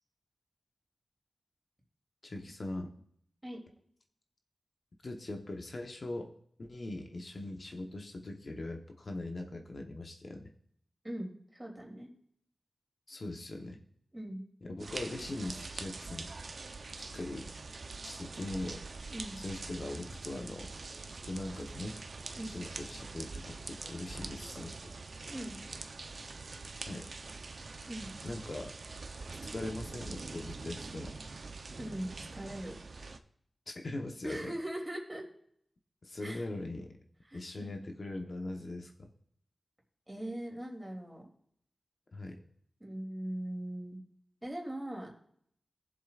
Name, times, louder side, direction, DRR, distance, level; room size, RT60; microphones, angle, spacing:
voice 1, 2.2-2.9 5.0-6.3 6.6-10.5 13.1-13.8 14.6-16.3 17.0-17.5 18.0-18.8 19.4-20.7 21.3-22.0 22.5-24.8 26.9-27.1 28.2-28.7 29.4-31.2 33.7-34.5 36.0-36.9 37.3-39.1 42.1-42.4, left 2 dB, 55° left, 3 dB, 1.0 m, -41 dB
voice 2, 11.0-12.1 14.1-14.4 19.1-19.4 22.3-22.5 25.3-25.6 27.9-28.1 31.8-32.8 34.2-35.2 36.2-36.5 37.2-37.8 40.1-41.3 42.8-44.0 44.4-45.1, right 1 dB, 15° right, -1 dB, 2.8 m, -40 dB
sound 1, 14.8-33.2, right 3 dB, 65° right, 0.6 m, -44 dB
20.0 x 7.5 x 2.4 m, 0.68 s
wide cardioid pair, 100°, 0 cm